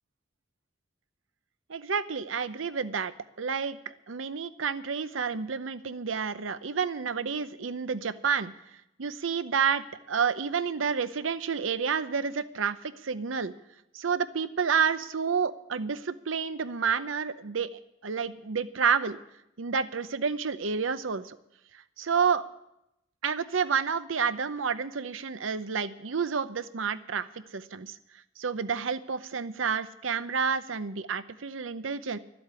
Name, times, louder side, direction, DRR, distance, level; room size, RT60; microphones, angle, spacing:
voice 1, 1.7-3.1 3.4-8.5 9.0-13.5 13.9-17.7 18.0-19.2 19.6-21.4 22.0-22.4 23.2-28.0 28.4-32.2, right 6 dB, 90° right, 13 dB, 0.7 m, -29 dB
13.0 x 7.9 x 9.6 m, 0.84 s
head